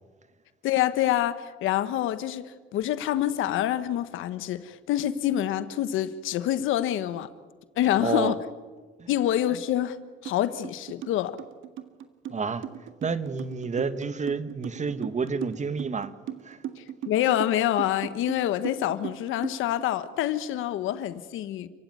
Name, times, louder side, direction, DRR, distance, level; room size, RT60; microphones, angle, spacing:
voice 1, 0.6-7.3 7.8-8.4 9.1-10.0 10.2-11.4 16.8-21.7, left 12 dB, 90° left, 1.3 m, -26 dB
voice 2, 8.0-8.3 9.0-9.1 12.3-12.7 13.0-16.1 16.4-16.6, right 4 dB, 35° right, 1.7 m, -29 dB
sound 1, 10.3-10.4 10.6-19.8, right 11 dB, 85° right, 1.8 m, -37 dB
29.5 x 15.5 x 9.4 m
cardioid pair, 90°, 20 cm